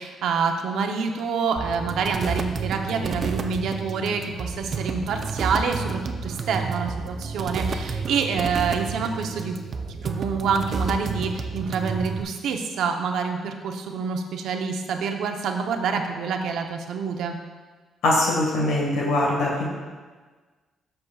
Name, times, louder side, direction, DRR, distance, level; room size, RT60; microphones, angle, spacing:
voice 1, 0.0-9.6 9.9-17.4, right 5 dB, 80° right, 4 dB, 0.8 m, -27 dB
sound 1, 1.6-12.2, right 4 dB, 50° right, 0.6 m, -30 dB
voice 2, 18.0-19.7, left 1 dB, 85° left, -3 dB, 1.6 m, -22 dB
13.0 x 6.6 x 2.4 m, 1.4 s
cardioid pair, 90°, 0 cm